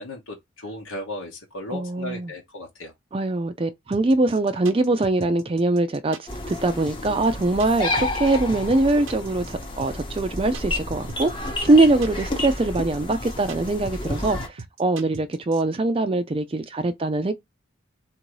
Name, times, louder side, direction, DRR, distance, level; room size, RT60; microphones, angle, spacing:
voice 1, 0.0-2.9, left 1 dB, 90° left, 1.0 m, -36 dB
voice 2, 1.7-2.3 3.1-17.3, right 2 dB, 25° right, 0.4 m, -22 dB
sound 1, 3.9-15.6, right 4 dB, 75° right, 0.6 m, -40 dB
sound 2, 6.3-14.5, left 2 dB, 25° left, 0.8 m, -31 dB
3.7 x 2.7 x 4.6 m
head